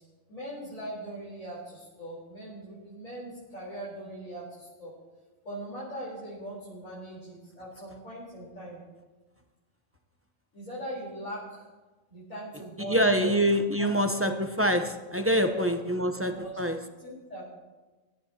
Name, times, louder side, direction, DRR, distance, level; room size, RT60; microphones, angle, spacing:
voice 1, 0.3-4.9 5.4-8.8 10.5-11.7 12.1-13.3 13.8-13.9 14.2-14.3 15.4-15.6 16.3-16.6 17.0-17.5, right 1 dB, 75° left, -8 dB, 4.4 m, -40 dB
voice 2, 12.8-16.8, equal, 15° right, 6 dB, 0.5 m, -25 dB
22.0 x 12.0 x 2.9 m, 1.2 s
omnidirectional pair, 1.4 m